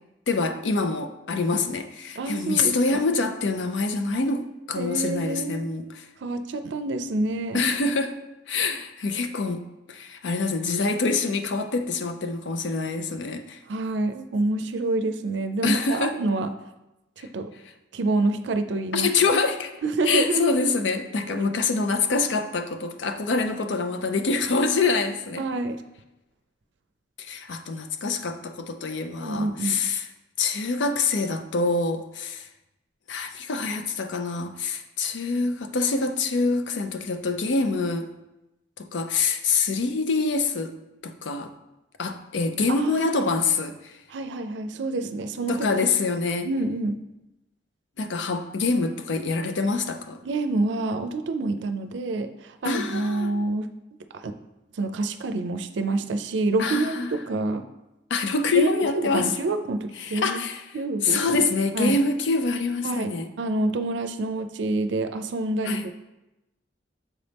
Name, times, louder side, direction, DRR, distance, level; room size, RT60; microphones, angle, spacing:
voice 1, 0.3-6.0 7.5-8.2 8.5-9.6 9.9-13.6 15.6-16.2 17.2-17.3 18.9-19.7 20.0-25.5 27.2-30.1 30.4-32.5 33.1-38.1 38.8-40.7 41.0-41.5 42.0-44.0 45.5-46.5 48.0-50.2 52.6-53.3 56.6-57.1 58.1-59.3 60.0-60.7 61.0-63.3 65.6-65.9, left 4 dB, 85° left, 8 dB, 0.5 m, -25 dB
voice 2, 2.2-3.0 4.8-5.6 6.2-7.7 13.7-16.5 17.3-17.5 17.9-19.1 19.8-20.5 21.4-21.5 25.4-25.8 29.2-29.8 42.7-43.3 44.1-45.6 46.5-47.0 50.2-53.7 54.1-54.3 54.8-57.6 58.6-60.4 60.7-61.5 61.7-62.0 62.8-65.8, right 2 dB, 80° right, 9 dB, 0.4 m, -27 dB
7.2 x 4.1 x 3.4 m, 0.95 s
head